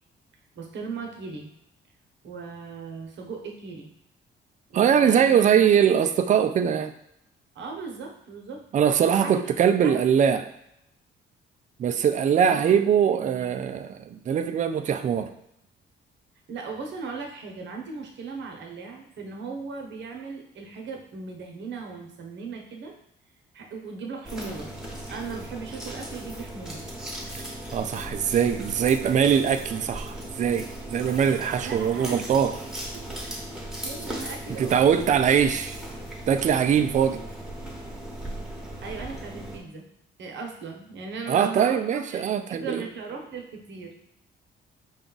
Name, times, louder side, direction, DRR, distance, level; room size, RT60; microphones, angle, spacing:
voice 1, 0.6-1.5 2.2-3.9 4.7-5.4 7.5-8.6 9.1-9.3 9.8-10.1 12.5-12.8 13.1-13.6 16.5-22.9 23.5-24.7 25.1-26.8 31.6-32.3 32.9-33.0 33.8-35.0 38.8-39.9 40.2-43.9, right 4 dB, 65° right, 2 dB, 0.9 m, -38 dB
voice 2, 4.7-6.9 8.7-10.4 11.8-15.3 27.7-32.5 34.6-35.8 36.3-37.2 41.3-42.8, right 8 dB, 40° right, 9 dB, 0.4 m, -22 dB
sound 1, 24.2-39.6, right 1 dB, ahead, 1.1 m, -37 dB
5.0 x 2.3 x 3.9 m, 0.78 s
cardioid pair, 90°, 20 cm